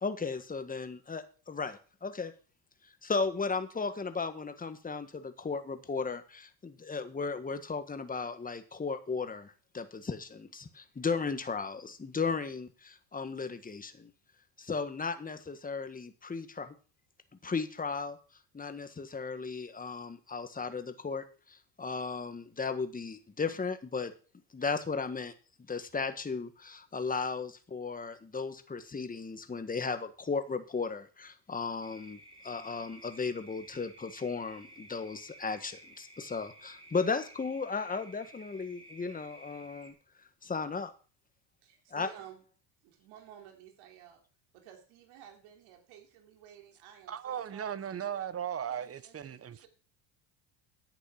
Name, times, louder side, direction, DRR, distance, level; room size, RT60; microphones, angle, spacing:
voice 1, 0.0-2.3 3.0-14.1 14.6-16.7 17.4-18.2 18.5-24.1 24.5-25.3 25.7-32.2 32.4-39.9 40.4-40.9 41.9-42.1, left 4 dB, 15° left, 1.6 m, -35 dB
sound 1, 31.8-39.9, right 1 dB, 10° right, 2.9 m, -54 dB
voice 2, 41.6-42.4 42.8-44.2 44.5-48.3 48.7-49.7, right 10 dB, 75° right, 3.5 m, -54 dB
voice 3, 47.1-49.7, right 9 dB, 30° right, 1.1 m, -37 dB
10.5 x 8.3 x 5.9 m
supercardioid pair, 100°, 50 cm